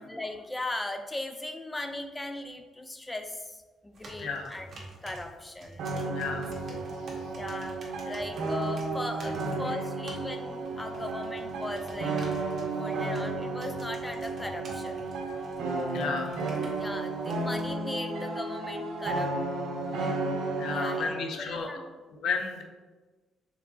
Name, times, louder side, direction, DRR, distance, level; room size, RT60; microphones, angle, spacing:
voice 1, 0.0-6.4 6.7-6.8 7.4-12.3 12.8-15.0 16.8-19.3 20.0-20.2 20.7-21.9, left 2 dB, 15° left, 7 dB, 0.4 m, -38 dB
sound 1, 3.9-17.7, right 2 dB, 45° right, 1.3 m, -49 dB
voice 2, 4.2-4.5 6.1-6.6 6.9-7.3 9.6-9.8 15.9-16.4 20.6-21.7 22.1-22.6, left 4 dB, 75° left, 4 dB, 0.6 m, -33 dB
sound 2, 5.8-21.2, right 3 dB, 80° right, 0.7 m, -33 dB
4.5 x 4.0 x 2.7 m, 1.3 s
cardioid pair, 90°, 0 cm